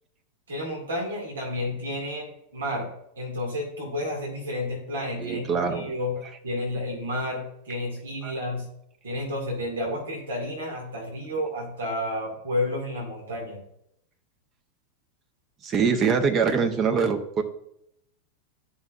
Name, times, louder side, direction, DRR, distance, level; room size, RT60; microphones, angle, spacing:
voice 1, 0.5-2.9 3.2-6.2 6.4-8.7 9.0-13.6, left 1 dB, 65° right, -1 dB, 2.2 m, -31 dB
voice 2, 5.2-5.8 8.2-8.4 15.6-17.4, right 6 dB, 30° right, 6 dB, 1.0 m, -24 dB
12.5 x 5.7 x 2.5 m, 0.76 s
figure-of-eight pair, 90°, 0 cm